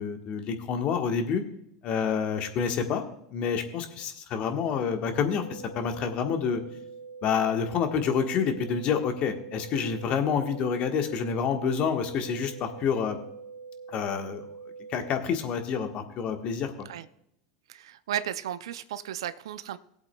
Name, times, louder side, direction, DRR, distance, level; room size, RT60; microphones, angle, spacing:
voice 1, 0.0-1.4 1.8-3.0 3.3-6.6 7.2-13.2 13.9-14.5 14.9-16.9, left 6 dB, 45° left, 1.3 m, -28 dB
sound 1, 5.1-15.1, right 5 dB, 25° right, 2.5 m, -44 dB
voice 2, 17.7-19.8, right 11 dB, 80° right, 0.4 m, -34 dB
18.5 x 8.1 x 2.3 m
hypercardioid pair, 95°, 3 cm